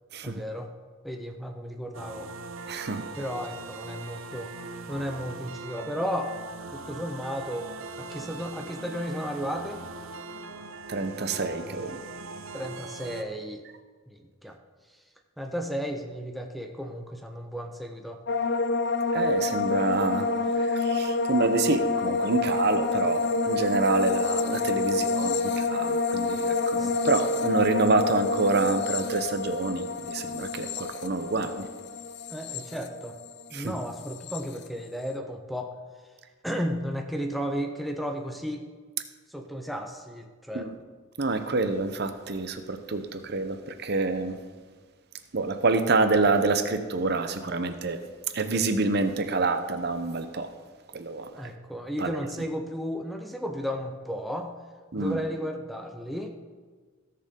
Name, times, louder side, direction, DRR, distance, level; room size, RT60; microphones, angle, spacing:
voice 1, 0.2-0.7 1.0-2.3 3.2-4.5 4.9-6.4 6.7-9.8 12.5-13.6 14.1-14.6 15.4-18.2 26.8-26.9 32.3-33.2 33.5-35.8 36.4-38.7 39.3-40.7 51.4-54.5 55.0-56.3, equal, ahead, 4 dB, 0.6 m, -34 dB
sound 1, 1.9-13.2, right 3 dB, 85° right, 0.8 m, -41 dB
voice 2, 2.7-3.0 10.9-12.0 19.1-20.3 20.5-31.7 33.5-33.7 40.5-40.7 41.2-44.4 45.3-48.0 48.3-50.5 50.9-51.5 52.0-52.2 54.9-55.2, right 3 dB, 55° right, 9 dB, 0.8 m, -27 dB
sound 2, 18.3-33.5 33.8-34.4, left 3 dB, 55° left, 0.5 m, -28 dB
17.0 x 6.7 x 3.8 m, 1.5 s
head